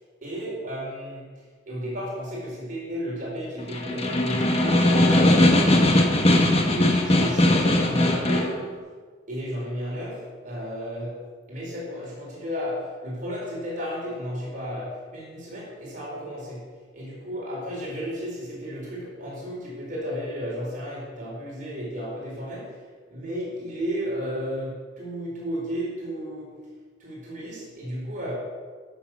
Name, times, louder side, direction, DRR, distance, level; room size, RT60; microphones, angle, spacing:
voice 1, 0.2-6.2 6.4-8.6 9.3-16.7 16.9-22.8 23.1-26.5 27.0-28.3, equal, 45° right, -5 dB, 4.2 m, -33 dB
Snare drum, 3.6-8.6, left 1 dB, 30° left, 1.2 m, -19 dB
14.5 x 6.7 x 6.0 m, 1.5 s
head